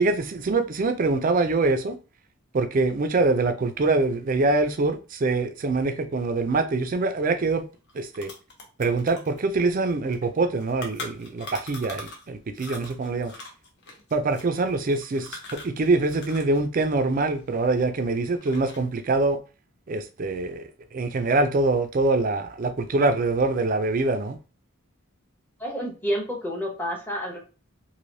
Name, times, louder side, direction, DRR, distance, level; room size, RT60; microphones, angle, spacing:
voice 1, 0.0-2.0 2.5-7.6 7.9-8.3 8.8-13.3 14.1-15.4 15.6-19.4 19.9-24.4, right 3 dB, 40° right, 0.4 m, -24 dB
sound 1, 7.5-7.6 7.9-12.3 12.6-16.6 16.8-18.0 18.4-19.0, left 2 dB, 55° left, 0.8 m, -41 dB
voice 2, 25.6-27.4, equal, 10° left, 0.7 m, -29 dB
3.2 x 2.6 x 2.6 m
head